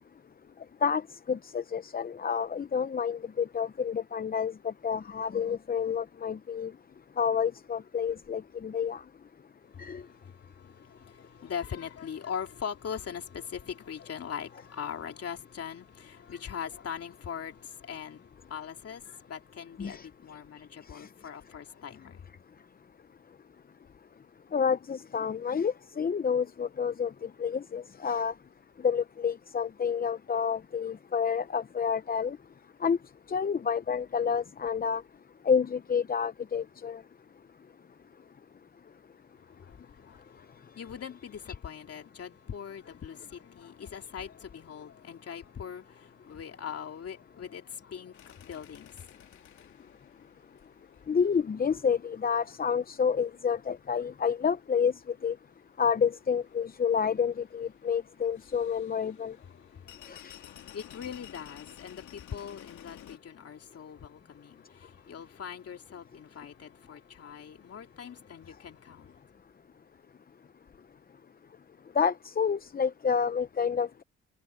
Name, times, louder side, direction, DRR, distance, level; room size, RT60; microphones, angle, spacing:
voice 1, 0.8-6.7 7.2-9.0 9.8-10.0 19.8-20.1 20.9-21.1 24.5-28.3 28.8-32.4 32.8-33.0 33.3-35.0 35.4-37.0 51.1-55.4 55.8-59.4 60.1-60.4 71.9-74.0, left 6 dB, 30° left, 0.7 m, -29 dB
voice 2, 9.7-22.2 39.5-49.1 59.7-69.1, left 7 dB, 50° left, 3.0 m, -41 dB
sound 1, 48.1-63.2, left 11 dB, 70° left, 2.8 m, -55 dB
cardioid pair, 90°, 30 cm